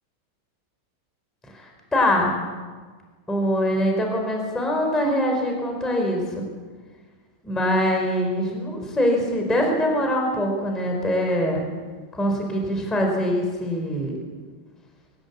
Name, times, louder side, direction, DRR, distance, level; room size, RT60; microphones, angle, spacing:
voice 1, 1.5-2.3 3.3-6.4 7.4-11.6 12.1-14.1, equal, ahead, 2 dB, 3.8 m, -23 dB
23.5 x 19.0 x 8.5 m, 1.5 s
omnidirectional pair, 5.9 m